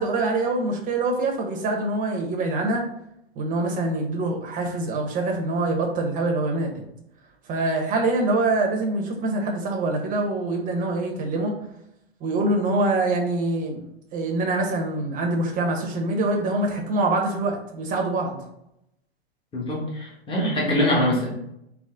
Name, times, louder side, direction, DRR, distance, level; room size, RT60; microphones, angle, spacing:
voice 1, 0.0-2.8 3.4-6.8 7.5-11.5 12.2-13.8 14.1-18.4 21.1-21.2, right 2 dB, 25° right, 1 dB, 1.0 m, -25 dB
voice 2, 19.5-21.3, left 1 dB, 15° left, -4 dB, 1.5 m, -23 dB
4.1 x 2.9 x 3.8 m, 0.79 s
hypercardioid pair, 130°, 32 cm